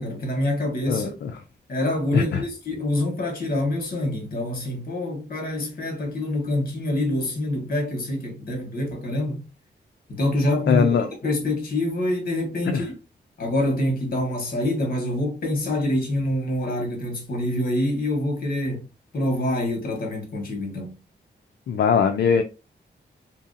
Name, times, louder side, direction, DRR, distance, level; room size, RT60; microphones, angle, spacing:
voice 1, 0.0-1.1 1.7-9.4 10.1-11.0 11.2-12.9 13.4-18.9 19.1-20.9, left 1 dB, 55° left, 1.2 m, -26 dB
voice 2, 0.9-1.3 2.1-2.4 10.7-11.1 12.7-12.8 21.7-22.4, left 6 dB, 70° left, 0.4 m, -21 dB
2.8 x 2.6 x 2.5 m
wide cardioid pair, 130°, 18 cm